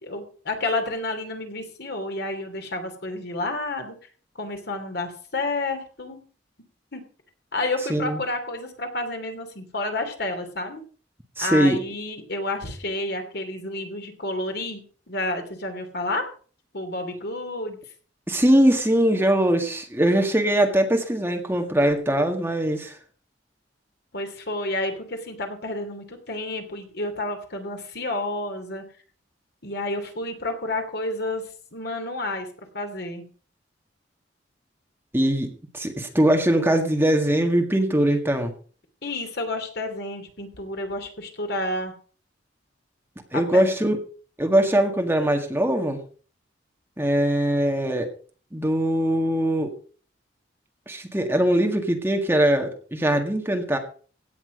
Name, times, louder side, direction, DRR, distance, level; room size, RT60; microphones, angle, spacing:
voice 1, 0.0-4.0 4.3-6.2 6.9-7.0 7.5-10.8 11.4-16.3 16.7-17.8 24.1-28.8 29.6-31.4 31.7-32.5 32.7-33.2 39.0-41.9 43.3-43.7, left 2 dB, 60° left, 5 dB, 2.9 m, -30 dB
voice 2, 7.9-8.2 11.4-11.8 18.3-23.0 35.1-38.5 43.3-44.0 44.4-46.0 47.0-48.1 48.5-49.7 50.9-53.8, right 1 dB, 10° right, 4 dB, 1.7 m, -21 dB
16.5 x 8.8 x 5.0 m, 0.41 s
head